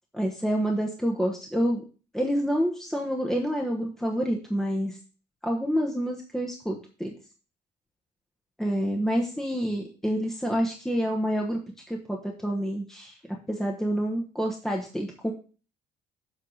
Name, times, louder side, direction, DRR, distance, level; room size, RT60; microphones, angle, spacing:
voice 1, 0.1-1.8 2.1-5.0 5.4-7.1 8.6-11.6 11.9-15.3, equal, ahead, 0 dB, 1.1 m, -28 dB
7.5 x 3.6 x 6.3 m, 0.37 s
cardioid pair, 110°, 17 cm